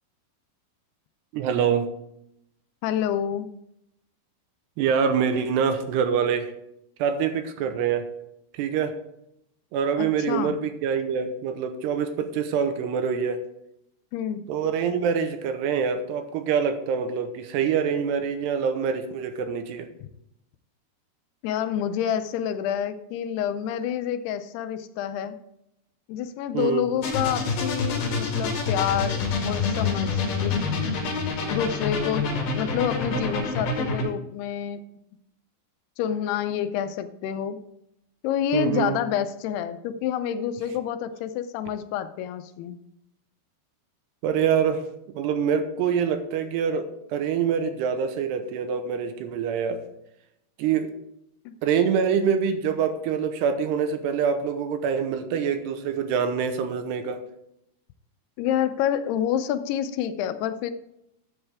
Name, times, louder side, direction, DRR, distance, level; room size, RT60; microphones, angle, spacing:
voice 1, 1.3-1.9 4.8-6.5 7.0-8.1 8.5-8.9 9.7-13.4 14.5-19.9 26.5-26.9 38.5-39.0 44.2-44.8 45.1-49.8 50.6-50.9 51.6-57.2, right 7 dB, 85° right, 8 dB, 3.1 m, -25 dB
voice 2, 2.8-3.5 10.0-10.6 14.1-14.4 21.4-25.4 26.1-30.7 31.5-32.3 32.6-34.8 36.0-37.6 38.2-42.8 51.5-51.6 58.4-60.7, left 10 dB, 80° left, 10 dB, 2.6 m, -28 dB
sound 1, 27.0-34.0, left 4 dB, 65° left, 3.9 m, -27 dB
13.0 x 8.0 x 3.5 m, 0.80 s
omnidirectional pair, 4.7 m